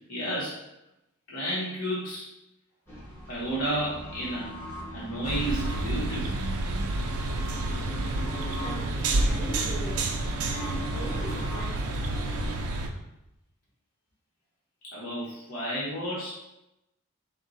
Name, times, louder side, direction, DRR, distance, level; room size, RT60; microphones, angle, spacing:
voice 1, 0.1-0.6 1.3-2.3 3.3-4.5 4.9-6.3 14.9-16.3, right 1 dB, 90° left, -7 dB, 1.1 m, -31 dB
sound 1, 2.9-12.6, equal, 10° left, 0.8 m, -39 dB
sound 2, 5.2-12.9, right 2 dB, 80° right, 0.5 m, -29 dB
voice 2, 8.5-10.1 10.5-11.9, right 1 dB, 40° left, -6 dB, 1.4 m, -40 dB
4.3 x 2.3 x 3.8 m, 0.89 s
head